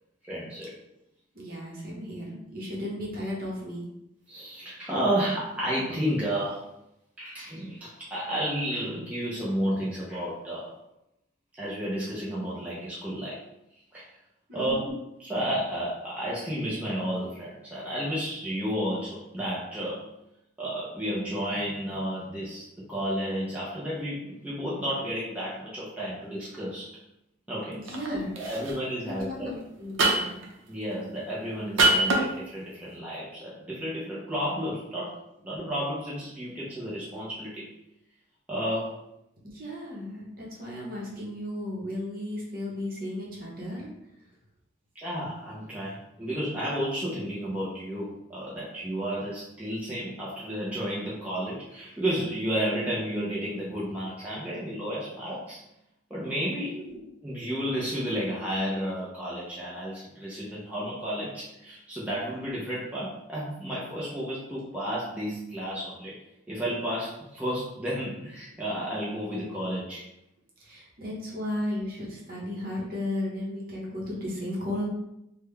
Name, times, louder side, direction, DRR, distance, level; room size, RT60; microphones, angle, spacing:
voice 1, 0.2-0.7 4.3-6.8 7.2-10.7 11.5-13.4 13.9-14.1 14.5-20.0 20.6-26.9 27.5-27.8 28.1-29.5 30.7-37.7 38.5-39.0 44.9-55.6 56.1-66.2 66.5-70.0, equal, 5° right, -8 dB, 0.5 m, -32 dB
voice 2, 1.3-3.9 14.5-14.8 27.7-28.3 29.0-30.4 39.4-43.9 56.7-57.0 70.6-74.8, left 1 dB, 45° right, -3 dB, 0.9 m, -35 dB
sound 1, 27.9-28.1 28.4-28.7 30.0-30.4 31.8-32.2, right 2 dB, 80° right, 0.6 m, -22 dB
3.7 x 2.2 x 3.2 m, 0.84 s
head